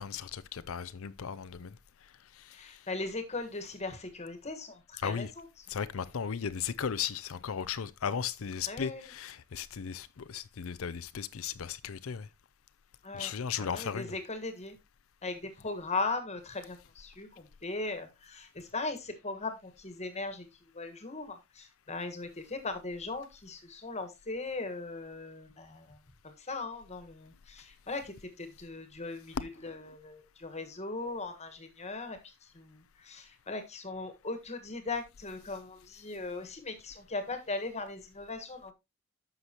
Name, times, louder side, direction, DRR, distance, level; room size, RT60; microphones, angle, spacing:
voice 1, 0.0-2.9 5.0-5.3 5.7-12.3 13.1-14.1 29.3-29.7 35.5-35.6, left 7 dB, 65° left, 0.5 m, -36 dB
voice 2, 2.5-5.4 8.7-9.1 13.0-13.3 13.6-14.8 15.2-26.0 26.2-38.7, left 3 dB, 30° left, 1.5 m, -39 dB
9.7 x 6.7 x 2.9 m
head